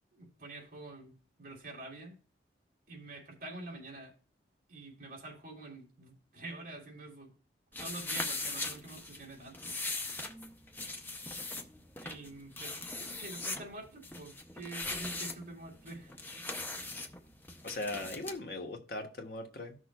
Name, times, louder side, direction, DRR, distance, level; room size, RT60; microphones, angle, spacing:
voice 1, 0.1-2.1 2.9-4.1 4.7-7.3 7.8-9.8 12.0-16.2, right 2 dB, 50° right, 2.7 m, -47 dB
sound 1, 7.7-18.4, left 2 dB, 10° left, 0.6 m, -40 dB
voice 2, 17.6-19.8, left 2 dB, 60° left, 1.2 m, -39 dB
14.0 x 6.2 x 2.3 m
head